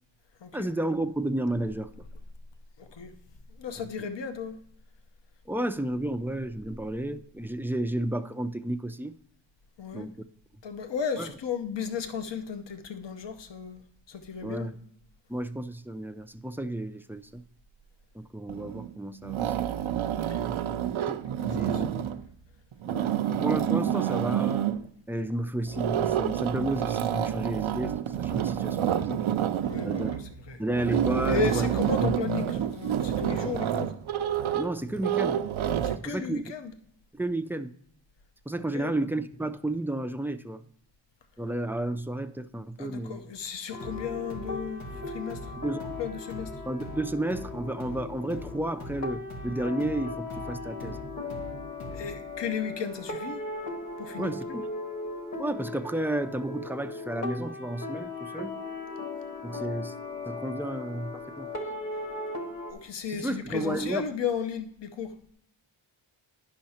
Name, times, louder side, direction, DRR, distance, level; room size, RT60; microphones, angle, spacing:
voice 1, 0.5-1.9 3.8-3.9 5.5-9.2 9.9-10.1 11.2-11.3 14.4-14.8 15.3-17.4 18.1-19.5 21.1-22.1 22.9-24.7 25.1-29.5 29.8-30.1 30.6-31.7 32.0-32.2 34.5-35.4 36.0-36.4 37.1-37.7 38.5-40.6 41.4-43.2 45.6-46.0 46.7-51.0 54.2-54.6 55.4-58.6 59.4-59.9 60.3-61.5 63.1-64.0, right 1 dB, 5° right, 0.3 m, -32 dB
voice 2, 2.8-3.1 3.6-4.6 9.8-10.1 10.6-13.8 14.1-14.7 20.1-20.5 21.4-21.8 29.6-30.2 30.5-30.6 31.3-33.9 35.8-36.7 38.7-38.9 42.8-45.5 46.0-46.5 51.9-53.4 54.0-54.4 62.7-65.1, left 6 dB, 60° left, 0.9 m, -34 dB
sound 1, 18.5-18.9 19.2-22.3 22.7-24.9 25.7-36.0, right 10 dB, 80° right, 0.6 m, -28 dB
sound 2, 43.7-62.7, left 3 dB, 40° left, 1.6 m, -38 dB
sound 3, 43.8-52.3, equal, 85° left, 1.6 m, -43 dB
10.5 x 5.6 x 4.2 m
wide cardioid pair, 85°, 47 cm